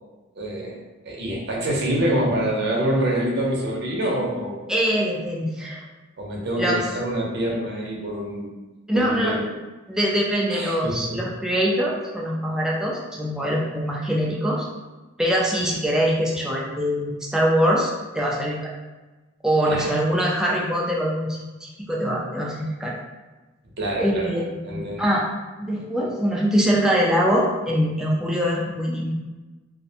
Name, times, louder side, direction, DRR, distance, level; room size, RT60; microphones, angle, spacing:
voice 1, 0.4-4.7 6.2-8.5 8.9-9.4 10.5-11.2 19.7-19.9 23.8-24.3 24.6-25.1, right 1 dB, 60° right, -3 dB, 0.6 m, -26 dB
voice 2, 4.7-5.8 6.6-6.8 8.9-9.4 9.9-14.7 15.2-18.7 19.4-23.0 24.0-25.3 25.6-29.1, equal, 5° right, -4 dB, 0.4 m, -23 dB
2.5 x 2.1 x 2.7 m, 1.2 s
head